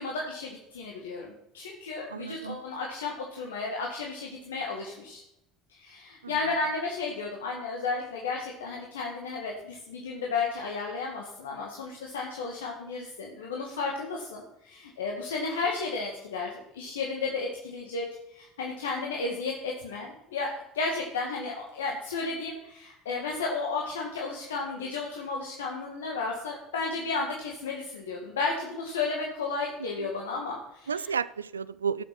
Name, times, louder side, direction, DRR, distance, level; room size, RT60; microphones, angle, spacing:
voice 1, 0.0-5.2 5.8-31.1, left 4 dB, 80° left, 0 dB, 2.0 m, -33 dB
voice 2, 2.1-2.6 6.2-6.4 30.0-30.1 30.9-32.0, right 6 dB, 85° right, 17 dB, 0.4 m, -32 dB
17.0 x 7.3 x 5.9 m, 0.86 s
hypercardioid pair, 65°, 0 cm